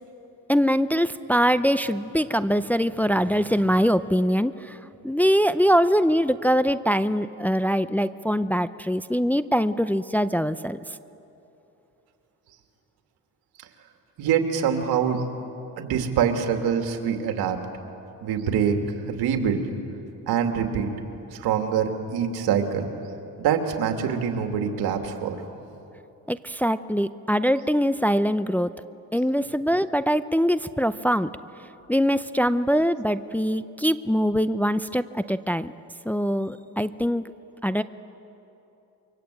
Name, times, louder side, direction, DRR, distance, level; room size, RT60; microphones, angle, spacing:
voice 1, 0.5-4.8 5.0-10.8 26.3-28.7 29.1-31.3 31.9-35.7 36.1-37.2 37.6-37.8, equal, 5° left, 12 dB, 0.6 m, -23 dB
voice 2, 14.2-15.2 15.8-17.6 18.2-19.7 20.3-20.9 21.3-22.9 23.4-25.4, right 7 dB, 85° right, 4 dB, 2.6 m, -25 dB
28.0 x 24.0 x 8.4 m, 2.9 s
cardioid pair, 95°, 37 cm